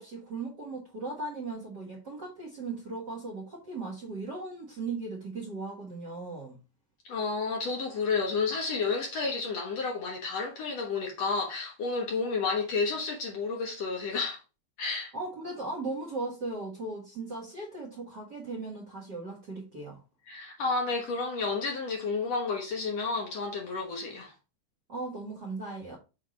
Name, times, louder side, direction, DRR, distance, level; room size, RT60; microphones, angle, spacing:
voice 1, 0.0-6.6 15.1-20.0 24.9-26.0, right 3 dB, 45° right, 1.5 m, -37 dB
voice 2, 7.1-14.4 14.8-15.1 20.3-24.3, left 4 dB, 60° left, 1.9 m, -31 dB
6.3 x 3.6 x 5.1 m
omnidirectional pair, 3.9 m